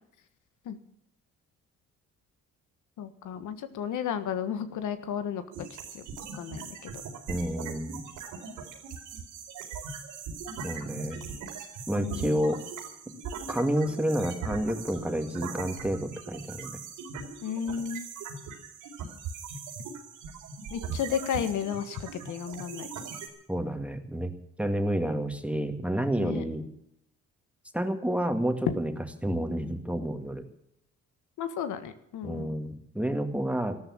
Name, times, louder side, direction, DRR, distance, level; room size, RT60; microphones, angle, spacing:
voice 1, 3.0-5.4 5.9-6.0 6.3-6.9 12.0-12.4 17.4-18.1 20.7-22.9 26.2-26.4 31.4-32.5, left 8 dB, 75° left, 10 dB, 1.7 m, -33 dB
sound 1, 5.5-23.3, right 5 dB, 90° right, 4.4 m, -40 dB
voice 2, 7.3-8.0 10.6-11.2 11.9-12.6 13.5-16.8 23.5-24.3 24.6-26.7 27.7-28.9 29.2-30.4 32.2-33.8, right 1 dB, 5° right, 6 dB, 2.3 m, -29 dB
14.0 x 13.0 x 7.4 m, 0.74 s
cardioid pair, 90°, 30 cm